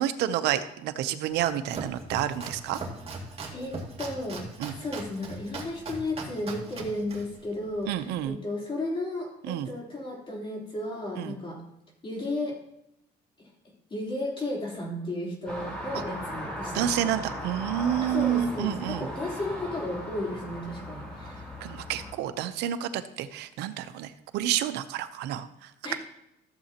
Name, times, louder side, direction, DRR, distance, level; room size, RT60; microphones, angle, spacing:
voice 1, 0.0-2.8 4.6-4.7 7.9-8.4 9.5-9.7 11.2-11.3 16.7-19.1 21.6-25.9, right 11 dB, 90° right, 11 dB, 0.7 m, -29 dB
Domestic sounds home sounds, 1.3-8.3, right 3 dB, 35° right, 2.2 m, -40 dB
voice 2, 3.5-4.4 4.8-11.6 12.0-12.6 13.4-13.5 13.9-16.9 18.0-21.5 25.8-26.0, left 2 dB, 30° left, -2 dB, 3.5 m, -34 dB
sound 1, 15.5-22.1, equal, 5° left, 4.1 m, -37 dB
14.5 x 7.6 x 2.9 m, 0.80 s
cardioid pair, 110°, 17 cm